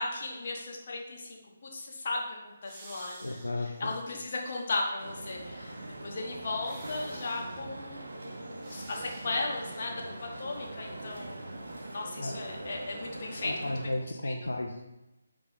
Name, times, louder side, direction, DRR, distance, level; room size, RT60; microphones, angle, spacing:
voice 1, 0.0-5.7 6.0-13.7 14.2-14.5, left 2 dB, 40° left, -1 dB, 1.2 m, -36 dB
sound 1, 2.6-4.7 5.0-5.1 6.6-7.7 8.6-9.3 9.6-9.9, right 2 dB, 20° right, 0.8 m, -51 dB
voice 2, 3.2-3.9 12.2-12.4 13.4-14.8, left 1 dB, 70° left, 2 dB, 0.5 m, -34 dB
sound 2, 5.0-13.9, right 2 dB, 55° right, 0.9 m, -42 dB
8.9 x 3.0 x 3.9 m, 0.98 s
figure-of-eight pair, 145°, 0 cm